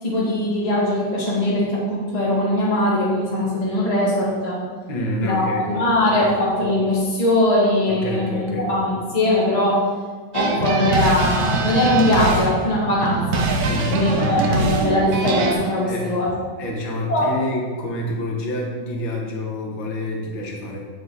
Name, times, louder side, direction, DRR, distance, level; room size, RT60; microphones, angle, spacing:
voice 1, 0.0-4.6 5.2-9.8 10.3-13.5 13.9-16.5 17.1-17.3, left 1 dB, 20° left, -6 dB, 1.7 m, -21 dB
voice 2, 4.9-5.6 6.2-6.3 7.9-8.7 13.6-14.8 15.8-16.1 16.6-20.9, left 1 dB, 80° left, -1 dB, 2.0 m, -28 dB
sound 1, 10.3-15.5, right 3 dB, 60° right, 1.2 m, -22 dB
8.4 x 4.9 x 4.0 m, 1.5 s
omnidirectional pair, 2.1 m